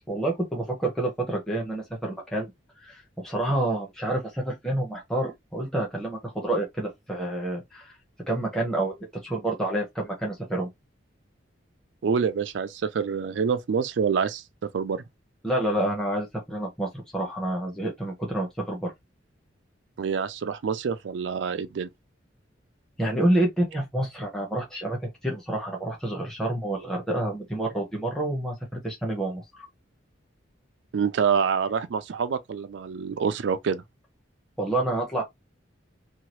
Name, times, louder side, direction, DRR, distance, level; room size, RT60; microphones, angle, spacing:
voice 1, 0.1-2.5 2.8-7.9 8.3-10.7 15.4-18.9 23.0-29.4 34.6-35.2, right 1 dB, 5° left, 0.9 m, -28 dB
voice 2, 12.0-14.4 14.7-15.0 20.0-21.9 30.9-33.8, right 6 dB, 65° right, 0.4 m, -26 dB
2.8 x 2.3 x 3.0 m
head